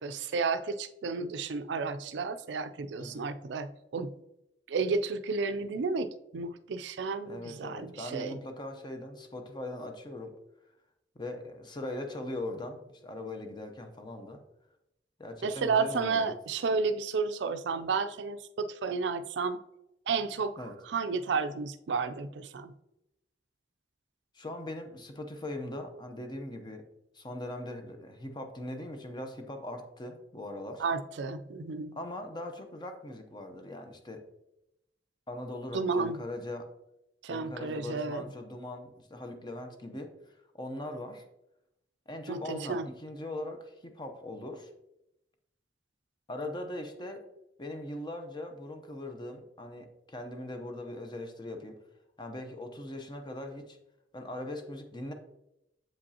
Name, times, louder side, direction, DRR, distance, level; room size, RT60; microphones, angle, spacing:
voice 1, 0.0-4.1 4.7-8.4 15.4-19.6 20.1-20.5 20.9-22.7 30.8-32.0 35.7-36.2 37.2-38.3 42.3-42.8, right 4 dB, 75° right, 11 dB, 0.4 m, -32 dB
voice 2, 3.0-3.3 7.3-10.3 11.1-14.4 15.2-16.3 20.6-20.8 24.3-26.8 27.1-30.8 31.9-34.2 35.3-36.7 37.3-41.2 42.1-44.7 46.3-47.2 47.6-51.8 52.2-53.8 54.1-55.1, left 1 dB, 25° left, 5 dB, 0.7 m, -40 dB
7.6 x 5.1 x 2.8 m, 0.87 s
head